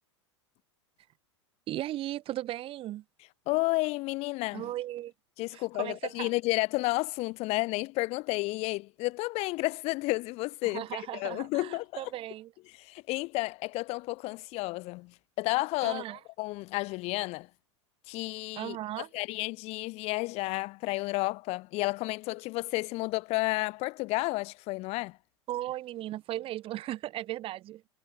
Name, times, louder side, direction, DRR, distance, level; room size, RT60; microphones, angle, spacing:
voice 1, 1.7-3.0 4.5-5.1 5.5-6.3 10.6-12.5 15.8-16.2 18.5-19.1 25.5-27.8, right 14 dB, 35° right, 1.4 m, -36 dB
voice 2, 3.5-4.7 5.4-12.0 12.7-17.5 18.1-25.2, left 22 dB, 45° left, 0.7 m, -32 dB
hypercardioid pair, 100°, 15 cm